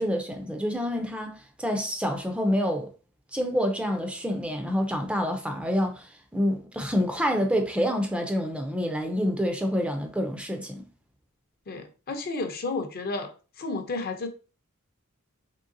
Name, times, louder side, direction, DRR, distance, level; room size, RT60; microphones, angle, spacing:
voice 1, 0.0-2.9 3.3-10.9, equal, 5° right, 0.4 m, -27 dB
voice 2, 11.7-13.3 13.6-14.3, left 3 dB, 45° left, 0.6 m, -32 dB
3.7 x 3.2 x 2.6 m
head